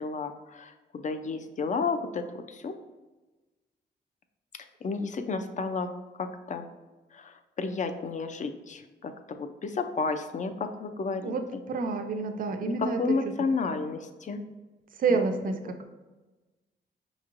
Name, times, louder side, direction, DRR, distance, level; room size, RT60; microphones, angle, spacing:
voice 1, 0.0-2.7 4.8-5.9 6.2-6.7 7.1-11.3 12.7-14.4, left 4 dB, 40° left, 7 dB, 0.4 m, -32 dB
voice 2, 11.2-13.2 15.0-15.9, right 4 dB, 45° right, 6 dB, 0.4 m, -29 dB
5.2 x 3.0 x 2.5 m, 1.2 s
wide cardioid pair, 105°, 19 cm